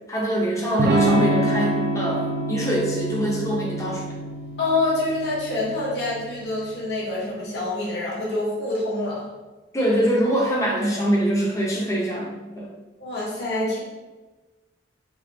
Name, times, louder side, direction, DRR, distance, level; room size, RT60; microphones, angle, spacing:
voice 1, 0.1-4.1 9.7-12.7, right 1 dB, 15° left, -3 dB, 0.6 m, -23 dB
Electric guitar / Strum, 0.8-6.5, right 1 dB, 55° right, 0.4 m, -27 dB
voice 2, 4.6-9.2 13.0-13.8, left 2 dB, 60° left, -6 dB, 1.1 m, -26 dB
3.3 x 2.4 x 3.8 m, 1.2 s
head